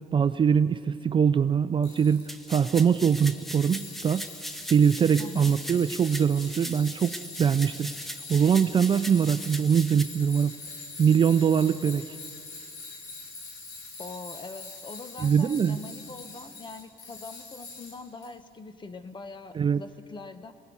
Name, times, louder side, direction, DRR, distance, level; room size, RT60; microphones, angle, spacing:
voice 1, 0.1-4.3 4.7-7.1 7.4-7.9 8.3-10.5 11.0-12.0 15.2-15.8 19.6-19.8, right 7 dB, 30° right, 12 dB, 0.4 m, -22 dB
Tools, 1.8-18.3, left 3 dB, 85° left, 3.3 m, -43 dB
sound 1, 2.3-10.0, equal, ahead, 0.8 m, -39 dB
voice 2, 5.2-5.5 14.0-20.5, left 3 dB, 30° left, 11 dB, 1.0 m, -43 dB
25.0 x 19.0 x 5.5 m, 2.4 s
cardioid pair, 110°, 17 cm